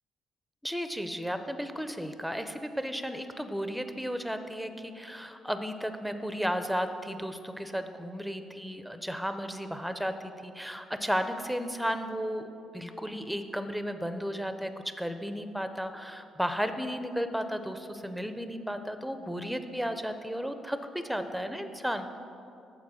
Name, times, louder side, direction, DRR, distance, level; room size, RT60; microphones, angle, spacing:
voice 1, 0.6-22.2, equal, ahead, 9 dB, 0.5 m, -34 dB
7.3 x 4.4 x 6.2 m, 2.6 s
cardioid pair, 90°, 0 cm